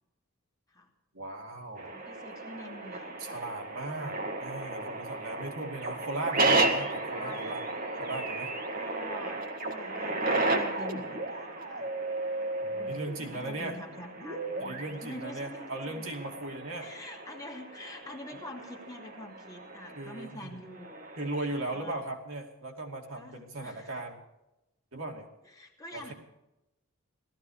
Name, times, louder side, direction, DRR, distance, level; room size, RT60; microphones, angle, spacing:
voice 1, 1.1-2.0 3.2-7.6 8.0-8.5 12.6-13.8 14.6-16.9 19.9-20.6 21.2-24.2 24.9-25.3 25.9-26.1, right 2 dB, 75° right, 1 dB, 2.6 m, -38 dB
sound 1, 1.8-21.4, right 2 dB, 40° right, 1.7 m, -34 dB
voice 2, 1.9-3.4 7.1-7.7 8.7-11.9 12.7-16.1 16.8-21.1 21.5-22.0 23.1-23.9 25.5-26.1, left 1 dB, 15° left, -1 dB, 2.5 m, -46 dB
17.5 x 14.0 x 4.9 m, 0.93 s
head